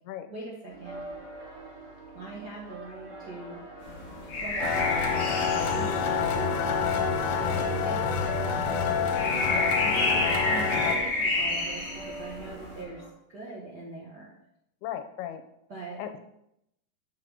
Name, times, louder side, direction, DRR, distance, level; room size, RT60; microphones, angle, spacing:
voice 1, 0.3-1.0 2.1-3.6 4.2-5.2 5.5-6.6 7.4-14.3 15.7-16.0, right 2 dB, 80° right, -4 dB, 0.9 m, -42 dB
sound 1, 0.7-13.1, right 2 dB, 50° right, 2.5 m, -44 dB
sound 2, 3.8-12.8, left 2 dB, 40° left, 1.1 m, -31 dB
sound 3, 4.6-10.9, left 6 dB, 65° left, 2.1 m, -27 dB
voice 2, 14.8-15.4 16.0-16.2, left 10 dB, 85° left, 8 dB, 2.6 m, -37 dB
7.5 x 6.0 x 6.4 m, 0.80 s
omnidirectional pair, 4.6 m